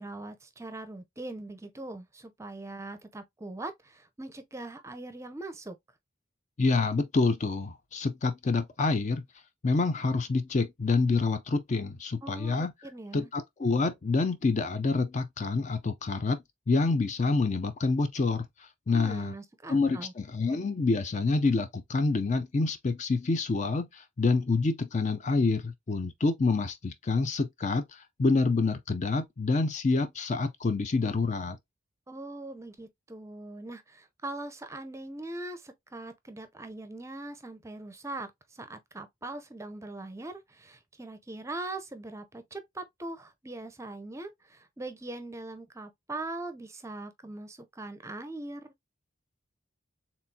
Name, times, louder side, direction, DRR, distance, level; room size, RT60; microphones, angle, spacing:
voice 1, 0.0-5.8 12.2-13.3 18.9-20.1 32.1-48.7, right 2 dB, 15° right, 0.5 m, -41 dB
voice 2, 6.6-9.2 9.6-12.7 13.1-16.4 16.7-18.5 18.9-19.3 19.7-31.6, left 3 dB, 35° left, 0.4 m, -27 dB
4.3 x 3.5 x 2.7 m
head